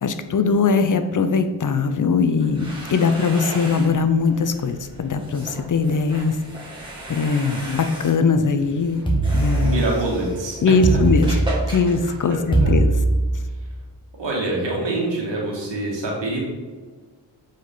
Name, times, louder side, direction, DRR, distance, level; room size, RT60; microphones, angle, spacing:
voice 1, 0.0-6.4 7.1-9.0 9.3-9.8 10.6-11.4 11.7-12.9, left 4 dB, 45° left, 9 dB, 0.6 m, -20 dB
sound 1, 2.3-12.9, right 1 dB, 10° right, 2.2 m, -36 dB
sound 2, 9.1-10.2 10.8-11.9 12.5-13.6, right 2 dB, 10° left, 1.7 m, -20 dB
voice 2, 9.6-10.6 12.3-12.7 14.2-16.4, right 2 dB, 90° right, -3 dB, 2.1 m, -25 dB
7.7 x 5.0 x 3.9 m, 1.4 s
wide cardioid pair, 85°, 42 cm